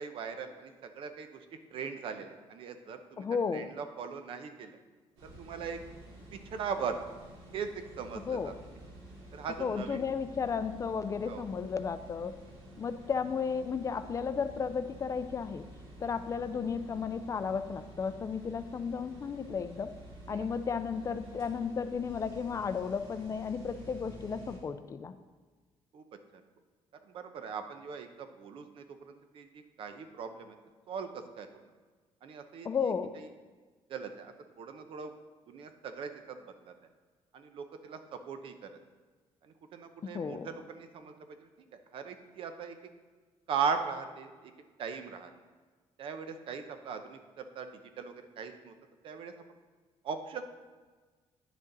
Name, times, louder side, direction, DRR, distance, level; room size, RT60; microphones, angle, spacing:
voice 1, 0.0-1.5 1.7-3.3 3.5-4.8 5.2-5.8 6.3-7.1 7.5-8.5 9.3-10.1 11.2-11.5 16.0-16.1 20.3-20.5 25.9-26.0 26.3-26.4 27.1-30.6 30.9-31.5 32.2-32.8 33.1-33.3 33.9-35.1 35.5-36.7 37.3-38.7 39.4-41.1 41.4-42.8 43.5-44.5 44.8-45.3 46.0-48.7 49.0-49.3 50.0-50.4, right 6 dB, 60° right, 8 dB, 0.8 m, -39 dB
voice 2, 3.2-3.7 8.1-8.5 9.6-12.3 12.8-15.6 16.0-19.9 20.3-25.1 32.6-33.1 40.0-40.5, left 6 dB, 30° left, 10 dB, 0.4 m, -34 dB
sound 1, 5.2-24.6, right 1 dB, 85° right, 2.6 m, -50 dB
9.9 x 6.3 x 4.0 m, 1.4 s
cardioid pair, 140°, 10 cm